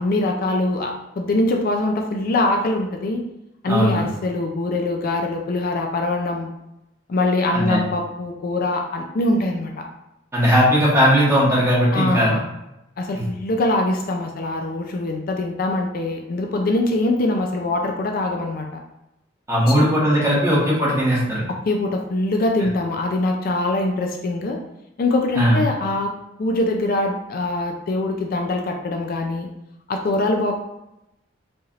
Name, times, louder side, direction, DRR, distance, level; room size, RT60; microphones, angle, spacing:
voice 1, 0.0-3.2 3.6-6.5 7.1-9.8 11.9-12.4 13.0-18.8 19.7-19.9 21.5-24.6 25.0-26.1 26.4-29.5 29.9-30.6, left 2 dB, 50° left, 2 dB, 0.4 m, -23 dB
voice 2, 3.7-4.0 7.5-7.8 10.3-12.4 19.5-21.4 25.4-25.6, equal, 15° right, -6 dB, 1.2 m, -18 dB
4.1 x 3.2 x 2.4 m, 0.88 s
head